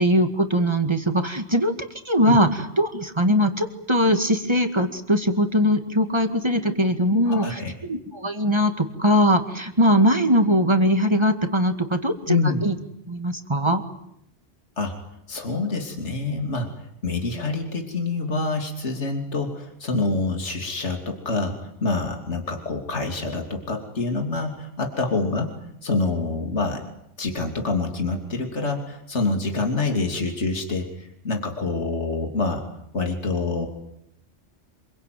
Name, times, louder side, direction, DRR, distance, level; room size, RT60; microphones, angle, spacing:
voice 1, 0.0-1.7 2.1-12.7 13.1-13.8, equal, 20° right, 7 dB, 2.2 m, -21 dB
voice 2, 7.2-7.7 12.2-12.7 14.8-15.0 15.3-16.7 17.0-26.8 27.2-32.6 32.9-33.7, left 3 dB, 70° left, 4 dB, 3.3 m, -26 dB
27.0 x 23.0 x 9.4 m, 0.76 s
omnidirectional pair, 1.2 m